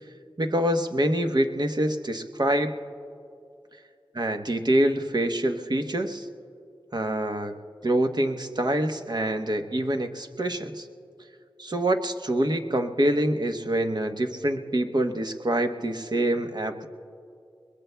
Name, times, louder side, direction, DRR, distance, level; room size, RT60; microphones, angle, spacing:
voice 1, 0.4-2.7 4.1-6.3 6.9-7.6 7.8-10.9 11.6-16.9, right 1 dB, 50° right, 6 dB, 1.0 m, -25 dB
30.0 x 21.5 x 2.3 m, 2.5 s
wide cardioid pair, 65°, 9 cm